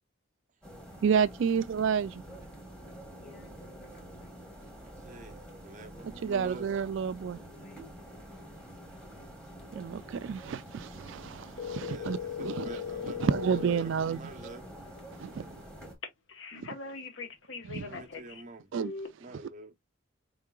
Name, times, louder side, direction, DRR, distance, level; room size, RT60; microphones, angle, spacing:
sound 1, 0.6-15.9, right 1 dB, 5° left, 1.4 m, -47 dB
voice 1, 1.0-2.2 6.2-7.4 9.7-14.2 15.2-15.5 17.6-17.9 18.7-18.9, right 7 dB, 65° right, 0.3 m, -30 dB
voice 2, 2.2-4.7 7.3-7.9 16.5-16.8, equal, 40° left, 2.2 m, -56 dB
voice 3, 4.8-6.7 11.7-14.7 15.2-15.8 17.7-18.7 19.2-19.7, right 2 dB, 35° right, 0.7 m, -48 dB
sound 2, 11.6-13.8 16.0-18.4 18.8-19.1, left 6 dB, 65° left, 0.9 m, -38 dB
4.7 x 3.7 x 2.3 m
head